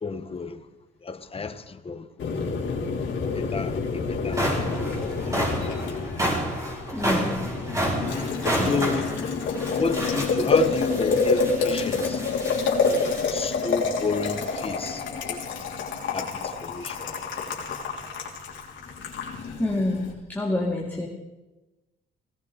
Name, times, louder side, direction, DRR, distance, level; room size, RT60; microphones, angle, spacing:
voice 1, 0.0-0.6 1.0-2.4 3.1-4.7 5.3-5.8 8.6-9.2 9.7-12.2 12.9-15.4 16.1-17.1, left 4 dB, 30° left, 1.1 m, -31 dB
Boiling, 2.2-20.1, left 4 dB, 70° left, 3.2 m, -28 dB
sound 1, 3.6-3.7 4.1-13.3, right 1 dB, 15° right, 5.2 m, -30 dB
voice 2, 6.9-7.4 8.6-8.9 19.6-21.1, left 2 dB, 10° left, 2.2 m, -27 dB
17.5 x 17.0 x 4.0 m
cardioid pair, 90°, 20 cm